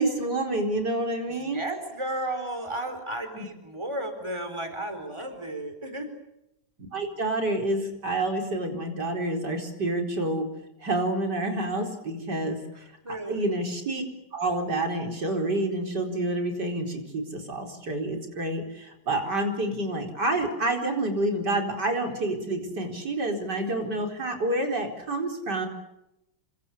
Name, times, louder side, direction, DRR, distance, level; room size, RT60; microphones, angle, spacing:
voice 1, 0.0-1.6 3.3-3.5 6.8-10.5 10.8-12.6 13.1-14.0 14.3-25.7, right 2 dB, 65° right, 3 dB, 5.1 m, -28 dB
voice 2, 1.4-6.1 13.0-13.4, right 1 dB, 15° right, 7 dB, 4.5 m, -33 dB
28.5 x 25.5 x 6.9 m, 0.85 s
omnidirectional pair, 2.0 m